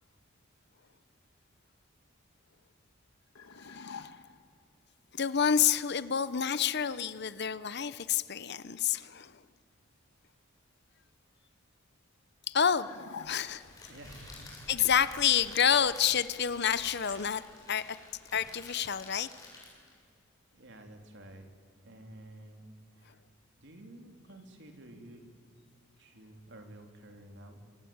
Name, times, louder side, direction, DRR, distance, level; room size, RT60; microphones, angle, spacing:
sound 1, 3.4-4.5 12.6-13.9, left 5 dB, 75° left, 1.5 m, -47 dB
voice 1, 3.7-4.1 5.1-9.3 12.5-12.9 13.2-13.6 14.7-17.4 17.7-18.0 18.3-19.3, left 8 dB, 50° left, 15 dB, 0.8 m, -28 dB
Crackle, 13.3-20.0, left 2 dB, 15° left, 7.5 m, -51 dB
voice 2, 13.9-14.5 20.5-21.5 21.8-23.2 23.6-25.2 26.0-27.6, right 1 dB, 55° right, 4 dB, 3.5 m, -51 dB
27.5 x 23.5 x 8.9 m, 2.3 s
head